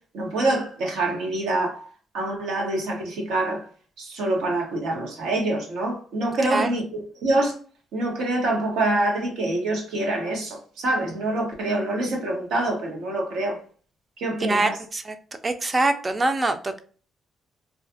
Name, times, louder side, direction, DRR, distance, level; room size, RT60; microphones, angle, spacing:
voice 1, 0.1-1.9 2.1-3.7 4.0-7.5 7.9-13.6 14.2-14.8, right 2 dB, 85° right, 0.9 m, -26 dB
voice 2, 14.4-15.2 15.4-16.8, right 2 dB, 25° right, 0.4 m, -24 dB
2.5 x 2.4 x 2.6 m
cardioid pair, 90°, 0 cm